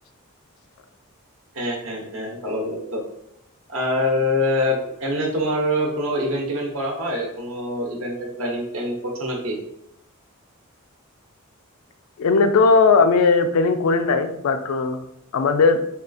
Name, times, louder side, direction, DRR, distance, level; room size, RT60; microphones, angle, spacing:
voice 1, 1.5-3.0 3.7-9.6, left 1 dB, 65° right, -1 dB, 0.8 m, -25 dB
voice 2, 12.2-15.8, left 4 dB, 85° left, 8 dB, 0.4 m, -18 dB
3.5 x 2.3 x 2.5 m, 0.75 s
head